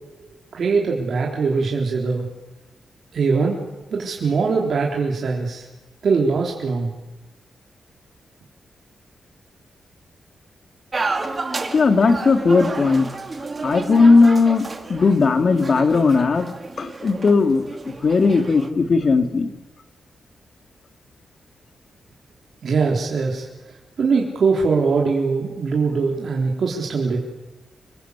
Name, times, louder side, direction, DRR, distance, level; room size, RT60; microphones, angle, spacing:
voice 1, 0.2-2.2 3.1-3.6 3.9-5.7 6.0-6.9 22.6-23.5 24.0-27.2, right 4 dB, 60° right, -1 dB, 3.9 m, -21 dB
sound 1, 10.9-18.7, right 3 dB, 30° right, 2.5 m, -31 dB
voice 2, 11.7-13.1 13.6-16.5 16.8-19.5, left 4 dB, 45° left, 7 dB, 2.6 m, -17 dB
27.0 x 21.5 x 8.3 m, 1.0 s
wide cardioid pair, 120°, 0 cm